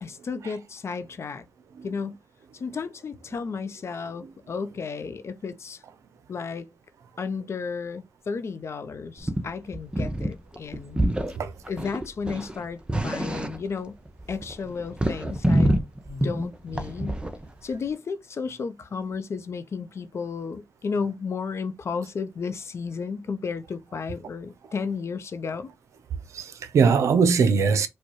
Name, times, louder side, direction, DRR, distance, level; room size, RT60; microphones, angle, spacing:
voice 1, 0.0-1.5 1.8-2.2 2.5-5.8 6.3-6.7 7.2-11.0 11.7-14.0 14.3-15.8 16.1-17.2 17.6-25.7, left 5 dB, 65° left, 0.6 m, -33 dB
sound 1, 9.2-9.5 9.7-10.3 10.6-11.4 11.7-13.8 14.1-17.5, right 1 dB, 20° right, 0.8 m, -26 dB
voice 2, 26.3-27.9, right 5 dB, 80° right, 0.5 m, -21 dB
4.6 x 2.2 x 3.0 m
supercardioid pair, 45°, 5 cm